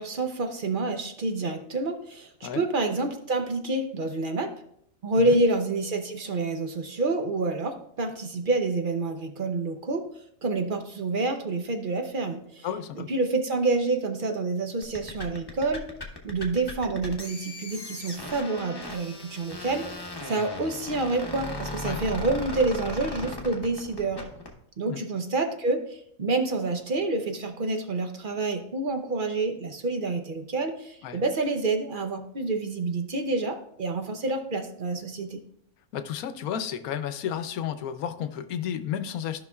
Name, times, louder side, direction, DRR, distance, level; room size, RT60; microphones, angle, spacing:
voice 1, 0.0-4.5 5.0-10.1 10.4-12.7 13.0-15.8 16.2-19.9 20.2-24.2 24.8-35.4, right 3 dB, 50° right, 6 dB, 0.7 m, -28 dB
voice 2, 12.6-13.1 21.8-22.0 24.9-25.0 31.0-31.2 35.9-39.4, left 9 dB, 85° left, 10 dB, 1.1 m, -32 dB
sound 1, 14.8-24.5, left 2 dB, 20° left, 1.0 m, -37 dB
14.0 x 5.6 x 2.3 m, 0.70 s
omnidirectional pair, 1.5 m